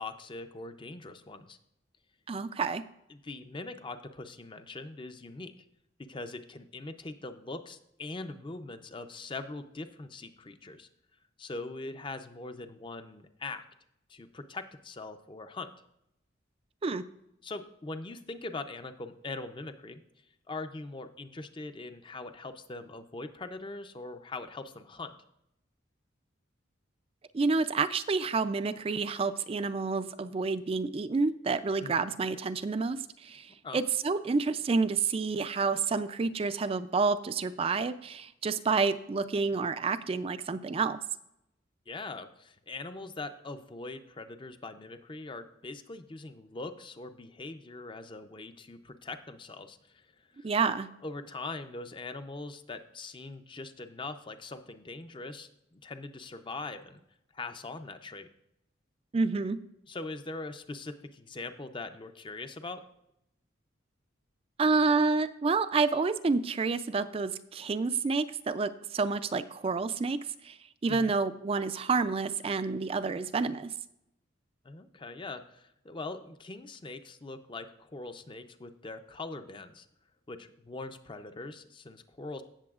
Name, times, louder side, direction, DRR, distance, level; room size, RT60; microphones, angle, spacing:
voice 1, 0.0-1.6 3.1-5.7 6.0-10.9 11.4-13.7 14.1-15.7 17.4-20.0 20.5-25.2 31.8-32.2 33.6-33.8 41.9-50.1 50.3-50.5 51.0-57.0 57.3-58.3 59.9-62.8 70.9-71.1 74.6-79.9 80.3-82.4, left 3 dB, 25° left, 9 dB, 0.5 m, -42 dB
voice 2, 2.3-2.8 16.8-17.0 27.3-41.0 50.4-50.9 59.1-59.6 64.6-70.6 70.8-73.7, right 4 dB, 30° right, 12 dB, 0.3 m, -29 dB
16.0 x 6.9 x 2.4 m, 0.82 s
head